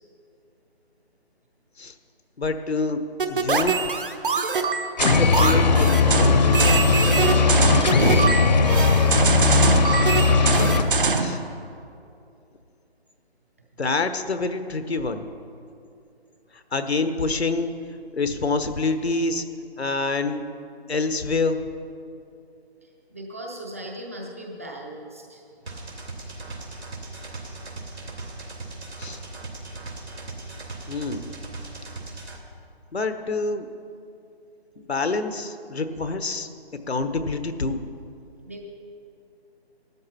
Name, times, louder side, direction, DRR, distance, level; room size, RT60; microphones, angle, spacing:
voice 1, 2.4-3.0 3.3-3.8 5.0-6.6 11.2-11.4 13.8-15.2 16.7-17.7 18.1-19.4 19.8-20.4 20.9-21.6 29.0-29.2 30.9-31.3 32.9-33.7 34.9-36.5 36.9-37.8, left 3 dB, 80° left, 9 dB, 1.2 m, -26 dB
sound 1, 3.2-11.4, right 4 dB, 55° right, 1.1 m, -23 dB
sound 2, 5.0-10.8, left 4 dB, 40° left, 0.8 m, -18 dB
voice 2, 7.4-8.9 17.5-17.6 23.1-25.4 36.4-36.6 38.4-38.6, equal, 15° right, -1 dB, 0.6 m, -38 dB
sound 3, 25.7-32.4, right 3 dB, 80° right, 3.2 m, -38 dB
14.5 x 12.5 x 4.4 m, 2.6 s
figure-of-eight pair, 155°, 32 cm